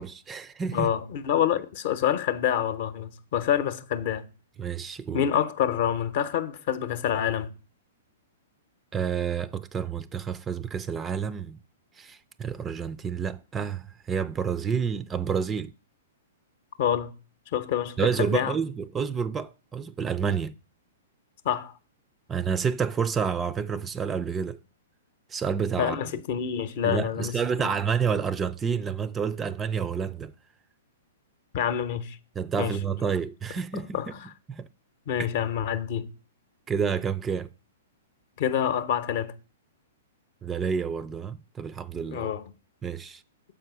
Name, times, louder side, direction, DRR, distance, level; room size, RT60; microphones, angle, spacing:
voice 1, 0.0-0.9 4.6-5.2 8.9-11.6 12.0-15.7 18.0-20.6 22.3-24.6 25.3-26.0 26.8-30.3 32.4-34.1 34.5-34.7 36.7-37.5 40.4-42.3 42.8-43.2, right 6 dB, 15° right, 0.3 m, -29 dB
voice 2, 0.7-4.2 5.1-7.5 16.8-17.1 17.5-18.5 21.4-21.7 25.8-27.7 31.5-32.2 32.6-32.8 33.7-34.3 35.1-36.1 38.4-39.3 42.1-42.5, left 9 dB, 45° left, 0.7 m, -27 dB
7.3 x 5.0 x 6.0 m
figure-of-eight pair, 110°, 0 cm